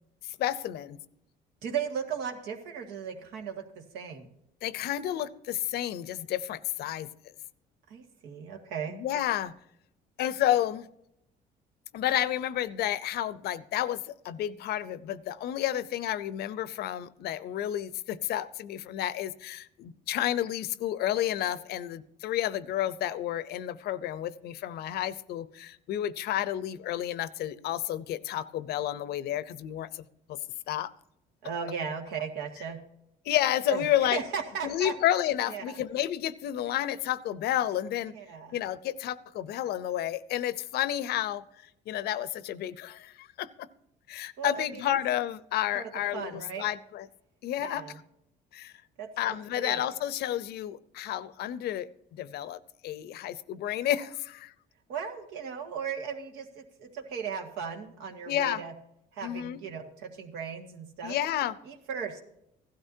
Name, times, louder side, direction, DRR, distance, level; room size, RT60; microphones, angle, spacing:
voice 1, 0.4-1.0 4.6-7.1 8.9-9.5 10.2-10.9 11.9-30.0 30.3-30.4 30.7-30.9 33.3-34.2 34.6-38.1 38.5-41.4 41.9-43.7 44.1-47.1 47.4-47.8 48.5-48.7 49.2-54.5 58.3-58.6 59.2-59.6 61.0-61.5, left 12 dB, 70° left, 17 dB, 0.6 m, -31 dB
voice 2, 1.6-4.3 7.9-9.0 31.4-32.8 33.7-34.9 35.5-35.8 38.1-38.6 44.4-44.8 45.7-45.8 46.1-46.7 47.6-48.0 49.0-49.1 49.5-49.8 54.9-58.7 59.1-61.2 61.7-62.2, right 7 dB, 90° right, 4 dB, 1.9 m, -36 dB
16.0 x 12.5 x 2.7 m, 0.77 s
cardioid pair, 110°, 17 cm